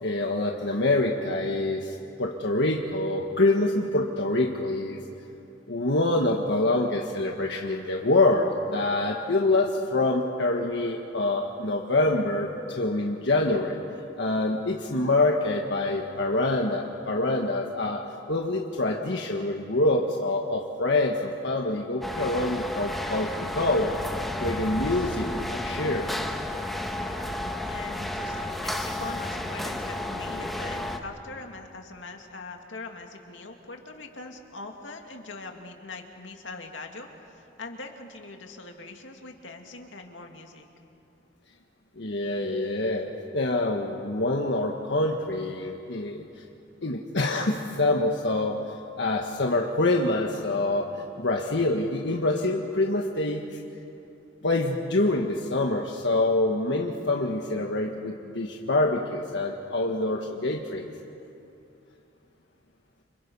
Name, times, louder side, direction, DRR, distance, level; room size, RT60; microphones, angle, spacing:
voice 1, 0.0-5.0 5.7-13.7 14.2-23.9 24.4-26.1 42.0-46.2 46.8-48.6 49.0-50.9 51.2-53.4 54.4-60.9, left 2 dB, 65° left, 1 dB, 1.5 m, -26 dB
sound 1, 22.0-31.0, left 1 dB, ahead, 1.4 m, -32 dB
voice 2, 27.6-40.7, left 3 dB, 85° left, 3 dB, 2.3 m, -42 dB
30.0 x 26.5 x 5.5 m, 2.7 s
head